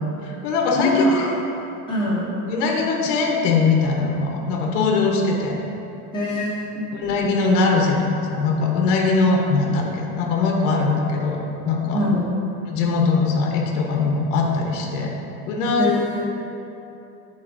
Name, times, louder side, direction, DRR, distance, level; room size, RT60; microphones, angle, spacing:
voice 1, 0.2-1.3 2.5-5.6 6.9-8.0 8.3-12.0 12.7-15.1 15.5-15.9, left 4 dB, 55° left, 1 dB, 1.0 m, -21 dB
voice 2, 0.8-1.3 1.9-2.4 6.1-6.9 11.9-12.3 15.8-16.3, left 1 dB, 10° left, -9 dB, 1.3 m, -23 dB
11.0 x 4.0 x 2.6 m, 2.9 s
supercardioid pair, 165°, 46 cm